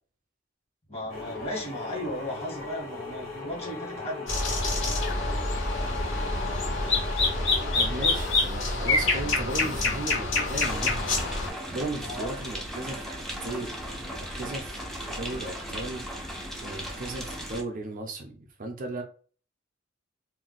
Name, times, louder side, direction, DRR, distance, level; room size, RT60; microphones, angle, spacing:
voice 1, 0.9-4.3 12.0-12.4, left 1 dB, 30° left, 1.4 m, -36 dB
sound 1, 1.1-8.3, left 2 dB, 85° left, 1.6 m, -38 dB
sound 2, 4.3-11.5, left 3 dB, 65° left, 1.4 m, -26 dB
voice 2, 7.7-11.0 11.7-14.8 15.1-16.1 16.6-19.0, right 2 dB, 45° right, 0.5 m, -36 dB
sound 3, 10.6-17.6, equal, ahead, 0.6 m, -37 dB
2.6 x 2.2 x 3.9 m
head